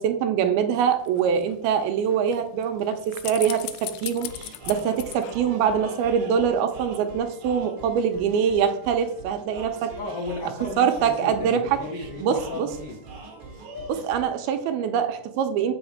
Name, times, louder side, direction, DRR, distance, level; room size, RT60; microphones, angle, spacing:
voice 1, 0.0-9.9 10.8-11.8 12.2-12.7 13.9-15.7, right 7 dB, 80° right, 7 dB, 2.5 m, -24 dB
sound 1, 0.9-6.2 6.5-6.6, left 14 dB, 85° left, 2.0 m, -39 dB
sound 2, 4.2-14.2, right 3 dB, 50° right, 1.7 m, -43 dB
voice 2, 9.9-13.0, left 3 dB, 70° left, 0 dB, 1.3 m, -34 dB
7.1 x 5.7 x 7.3 m, 0.70 s
omnidirectional pair, 4.7 m